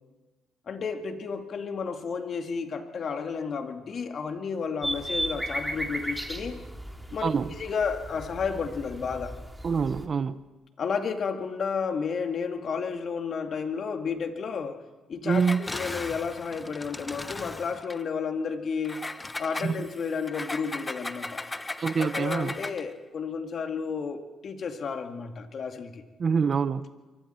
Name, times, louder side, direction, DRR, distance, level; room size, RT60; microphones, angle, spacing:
voice 1, 0.7-6.6 7.1-7.3 7.6-9.4 10.8-14.8 15.1-19.1 19.4-21.4 22.0-26.0, left 5 dB, 55° left, 5 dB, 2.2 m, -32 dB
sound 1, 4.8-10.1, right 1 dB, 5° right, 2.7 m, -35 dB
voice 2, 7.2-7.5 9.6-10.4 15.2-15.6 19.6-19.7 21.8-22.6 26.2-26.8, right 5 dB, 45° right, 14 dB, 0.8 m, -25 dB
Engine, 15.3-18.0 18.8-22.9, left 2 dB, 20° left, 0.9 m, -37 dB
26.5 x 24.0 x 4.5 m, 1.2 s
cardioid pair, 90°, 0 cm